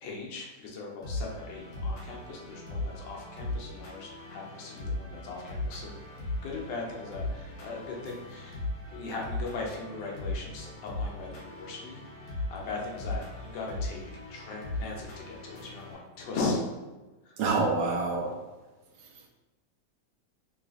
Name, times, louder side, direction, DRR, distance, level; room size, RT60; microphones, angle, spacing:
voice 1, 0.0-6.0 6.4-8.6 8.9-12.0 12.3-14.0 14.3-16.6 17.3-17.4, left 3 dB, 75° left, -1 dB, 1.3 m, -38 dB
sound 1, 1.0-16.0, left 2 dB, 60° left, 1.2 m, -38 dB
voice 2, 17.4-18.3, right 3 dB, 75° right, 0 dB, 1.2 m, -26 dB
3.2 x 3.1 x 2.4 m, 1.2 s
omnidirectional pair, 2.1 m